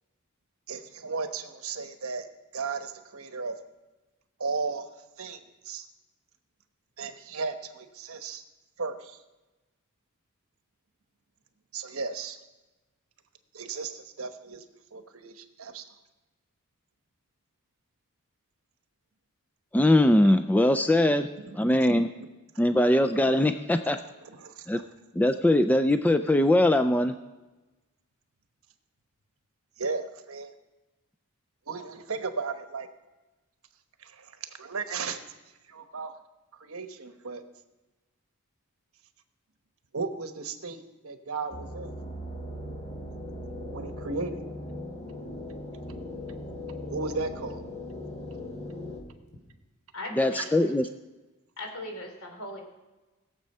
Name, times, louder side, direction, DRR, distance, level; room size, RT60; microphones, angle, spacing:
voice 1, 0.7-2.3 2.5-3.6 4.4-4.9 5.2-5.9 7.0-8.4 8.8-9.2 11.7-12.4 13.5-14.6 14.9-15.8 21.4-21.9 23.4-24.9 29.8-30.5 31.7-32.9 34.0-35.2 35.7-36.1 36.5-37.4 39.9-41.9 43.7-44.4 45.9-46.1 46.9-47.6 50.4-50.5, right 4 dB, 70° right, 8 dB, 1.1 m, -35 dB
voice 2, 19.7-21.3 21.5-22.1 22.6-24.0 24.7-24.8 25.2-27.1 50.2-50.8, left 1 dB, 5° left, 8 dB, 0.3 m, -21 dB
sound 1, 41.5-49.0, left 1 dB, 30° left, 1.7 m, -39 dB
voice 3, 49.9-50.7 51.6-52.6, left 1 dB, 75° left, 2 dB, 3.2 m, -39 dB
19.0 x 7.4 x 5.5 m, 1.1 s
head